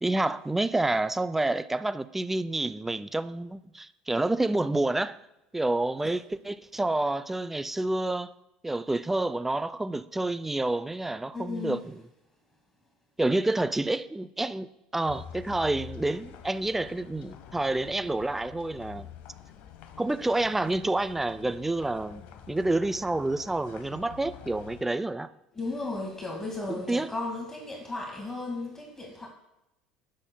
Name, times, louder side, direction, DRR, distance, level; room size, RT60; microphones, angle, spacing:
voice 1, 0.0-5.2 5.5-8.3 8.6-12.0 13.2-19.1 20.0-25.3 26.7-27.1, right 2 dB, 10° right, 0.5 m, -28 dB
voice 2, 11.3-11.8 25.5-29.3, left 3 dB, 15° left, 1.9 m, -35 dB
sound 1, 15.1-24.8, left 9 dB, 60° left, 1.1 m, -47 dB
17.5 x 7.5 x 2.3 m
hypercardioid pair, 75°, 3 cm